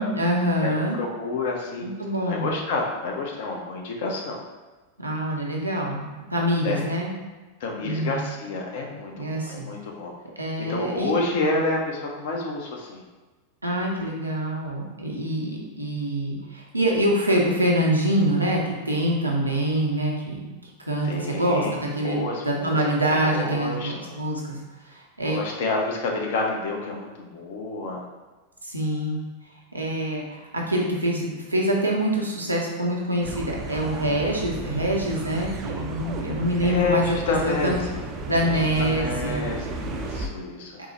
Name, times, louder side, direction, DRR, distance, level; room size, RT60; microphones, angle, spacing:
voice 1, 0.0-1.0 1.8-2.5 5.0-7.1 7.8-8.2 9.1-9.7 10.4-11.1 13.6-20.5 20.9-22.2 22.4-24.6 24.9-25.4 28.6-29.2 29.7-31.2 31.5-37.2 37.4-37.7 38.3-39.4, right 1 dB, 85° right, -2 dB, 0.6 m, -25 dB
voice 2, 0.6-1.9 2.3-4.4 6.6-6.9 7.6-10.1 10.7-13.0 21.0-21.7 22.0-24.2 25.3-28.1 36.6-38.0 38.4-40.8, left 3 dB, 55° left, 0 dB, 0.6 m, -29 dB
sound 1, 33.2-40.3, right 2 dB, 30° right, 0.3 m, -34 dB
3.6 x 2.0 x 3.0 m, 1.2 s
figure-of-eight pair, 90°, 0 cm